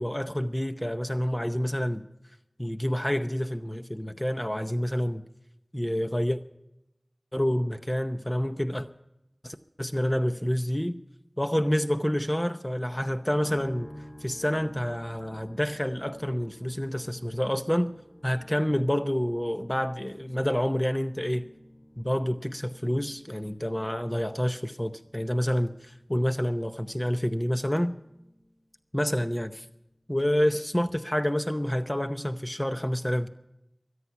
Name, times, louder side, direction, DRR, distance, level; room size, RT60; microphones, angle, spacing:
voice 1, 0.0-2.1 2.6-5.2 5.7-6.4 7.3-8.9 9.4-11.0 11.4-13.9 14.2-17.9 18.2-21.5 22.0-27.9 28.9-29.7 30.1-33.3, equal, 15° left, 0.7 m, -28 dB
sound 1, 13.4-28.7 29.0-29.8, equal, 70° left, 6.0 m, -51 dB
22.0 x 9.6 x 5.8 m
wide cardioid pair, 45°, 0 cm